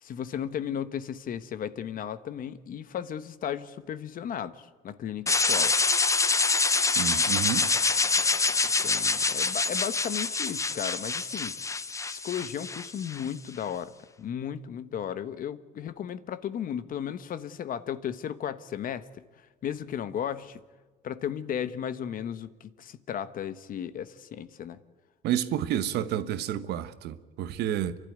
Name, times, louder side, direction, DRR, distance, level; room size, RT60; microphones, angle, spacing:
voice 1, 0.0-5.7 8.8-11.6 12.1-13.9 14.2-20.6 21.0-24.8, left 9 dB, 55° left, 1.1 m, -35 dB
sound 1, 5.3-13.3, left 4 dB, 20° left, 0.7 m, -26 dB
voice 2, 7.0-7.7 25.2-28.0, right 10 dB, 75° right, 1.2 m, -30 dB
29.0 x 12.0 x 9.4 m
cardioid pair, 110°, 17 cm